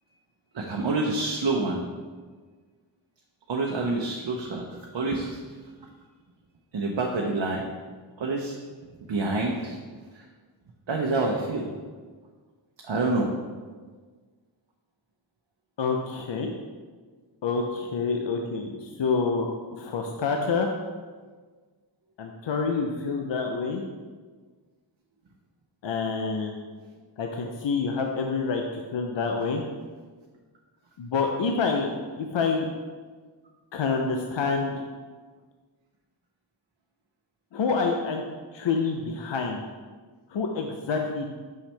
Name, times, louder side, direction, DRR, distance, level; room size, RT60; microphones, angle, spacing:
voice 1, 0.5-1.8 3.5-5.9 6.7-7.7 8.2-8.6 9.1-9.8 10.1-10.3 10.9-11.7 12.8-13.3, right 3 dB, 65° right, -1 dB, 0.8 m, -28 dB
voice 2, 15.8-16.5 17.4-20.7 22.2-23.8 25.8-26.6 27.2-29.6 31.0-31.9 32.2-32.7 33.7-34.8 37.5-38.2 38.5-39.7 40.3-41.3, left 4 dB, 65° left, 2 dB, 0.6 m, -27 dB
6.0 x 5.8 x 3.3 m, 1.5 s
cardioid pair, 45°, 47 cm